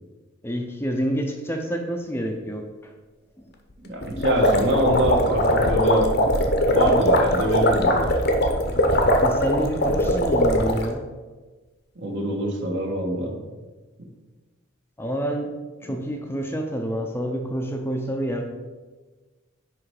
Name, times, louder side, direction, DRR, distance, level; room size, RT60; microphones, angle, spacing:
voice 1, 0.4-2.6 3.4-3.5 9.2-11.0 15.0-15.5 15.8-18.4, equal, 10° left, 3 dB, 0.6 m, -28 dB
voice 2, 3.8-6.1 6.7-8.1 12.0-13.4, right 1 dB, 60° right, 1 dB, 1.4 m, -24 dB
sound 1, 4.0-10.9, equal, 50° left, 0.8 m, -20 dB
9.7 x 3.3 x 4.8 m, 1.3 s
head